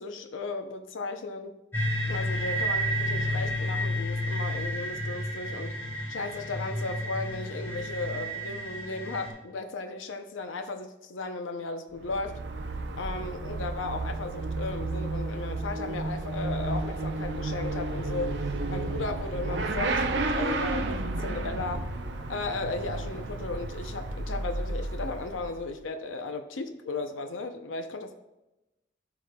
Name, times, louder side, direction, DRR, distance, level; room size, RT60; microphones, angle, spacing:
voice 1, 0.0-1.5 2.1-5.8 6.1-12.4 13.0-18.3 18.7-21.8 22.3-28.1, left 3 dB, 85° left, 7 dB, 0.6 m, -35 dB
sound 1, 1.7-9.3, equal, 10° left, 2.7 m, -31 dB
Motorcycle / Accelerating revving vroom, 11.9-25.8, right 2 dB, 65° right, 0.6 m, -32 dB
13.0 x 4.9 x 2.2 m, 0.98 s
head